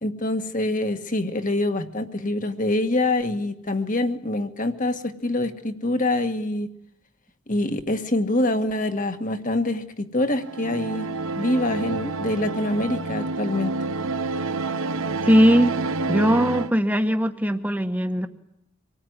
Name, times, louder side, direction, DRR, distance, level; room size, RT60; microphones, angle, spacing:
voice 1, 0.0-6.7 7.5-11.1 11.4-13.7, left 1 dB, 40° left, 8 dB, 1.8 m, -25 dB
sound 1, 10.4-16.7, right 3 dB, 75° right, 1.0 m, -28 dB
voice 2, 15.2-15.7 16.1-18.3, equal, 10° right, 7 dB, 1.4 m, -19 dB
26.0 x 19.0 x 9.8 m, 0.75 s
head